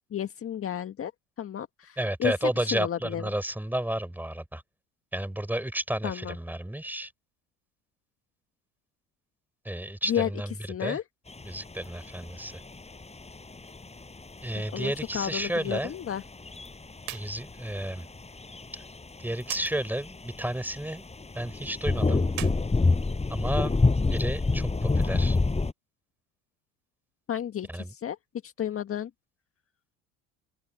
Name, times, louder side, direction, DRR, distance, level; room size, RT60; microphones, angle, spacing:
voice 1, 0.1-1.1 1.4-3.2 6.0-6.3 10.1-10.3 10.7-11.0 14.7-16.2 27.3-28.2 28.4-29.1, left 9 dB, 35° left, 1.7 m, -32 dB
voice 2, 2.0-4.6 5.1-7.1 9.6-11.0 11.4-12.6 14.4-15.9 17.1-18.1 18.7-18.8 19.2-21.1 21.3-22.3 23.3-23.8 24.1-25.4 27.7-27.9, right 1 dB, 5° right, 7.3 m, -32 dB
sound 1, 11.3-25.7, left 3 dB, 15° left, 7.4 m, -30 dB
sound 2, 17.0-17.3 17.6-17.7 19.4-19.7 22.2-23.6, right 18 dB, 60° right, 4.4 m, -39 dB
open air
hypercardioid pair, 70°, 37 cm